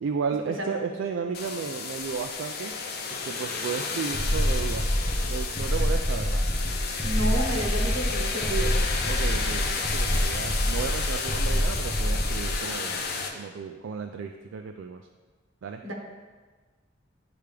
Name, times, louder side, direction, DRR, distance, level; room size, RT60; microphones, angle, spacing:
voice 1, 0.0-2.8 3.1-4.9 5.3-6.4 9.1-15.0 15.6-15.8, right 6 dB, 65° right, 4 dB, 0.3 m, -33 dB
sound 1, 1.3-13.3, left 5 dB, 50° left, 0.6 m, -32 dB
sound 2, 4.1-12.6, equal, 10° left, 0.7 m, -26 dB
voice 2, 7.0-8.7 15.8-15.9, right 1 dB, 85° right, 1 dB, 1.1 m, -30 dB
9.8 x 3.4 x 3.3 m, 1.4 s
head